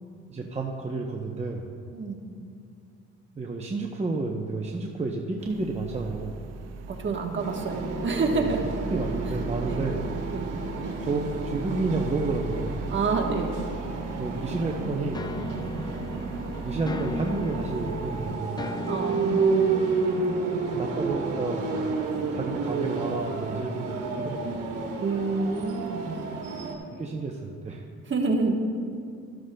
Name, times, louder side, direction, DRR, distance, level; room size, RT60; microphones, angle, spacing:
voice 1, 0.3-1.7 3.4-6.4 8.3-8.5 8.9-10.0 11.0-12.8 14.1-15.3 16.6-18.6 20.7-21.9 22.3-24.6 26.9-27.8, right 3 dB, 20° right, 0 dB, 0.7 m, -31 dB
sound 1, 5.4-18.4, right 3 dB, 60° right, 0.5 m, -39 dB
voice 2, 6.9-8.6 9.6-9.9 10.3-10.5 12.9-13.6 15.5-15.8 18.9-20.8 25.0-26.3 28.0-28.6, right 4 dB, 40° right, 1 dB, 1.3 m, -29 dB
sound 2, 7.4-26.7, right 4 dB, 90° right, 1.4 m, -31 dB
sound 3, 15.1-22.0, left 2 dB, 15° left, 0.4 m, -38 dB
13.0 x 12.5 x 2.2 m, 2.4 s
cardioid pair, 90°, 30 cm